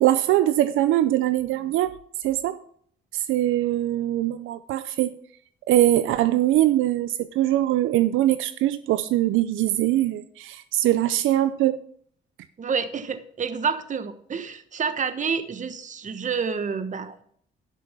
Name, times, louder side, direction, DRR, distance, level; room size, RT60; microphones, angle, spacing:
voice 1, 0.0-2.6 3.1-5.1 5.7-11.8, right 13 dB, 85° right, 0.5 m, -22 dB
voice 2, 12.6-17.2, right 6 dB, 40° right, 1.1 m, -28 dB
12.5 x 6.3 x 5.6 m
cardioid pair, 90°, 20 cm